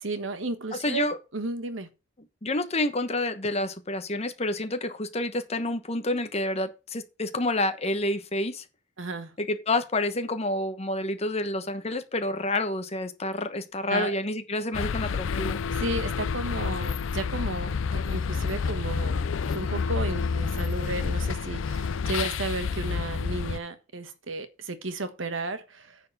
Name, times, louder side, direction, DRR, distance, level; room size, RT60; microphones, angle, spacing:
voice 1, 0.0-1.9 9.0-9.3 13.9-14.2 15.7-19.2 19.5-26.0, right 2 dB, 85° right, 1.3 m, -33 dB
voice 2, 0.7-1.2 2.4-8.6 9.4-15.6, left 2 dB, 35° left, 1.1 m, -29 dB
sound 1, 14.7-23.6, left 5 dB, 90° left, 0.5 m, -29 dB
9.4 x 4.6 x 6.7 m
head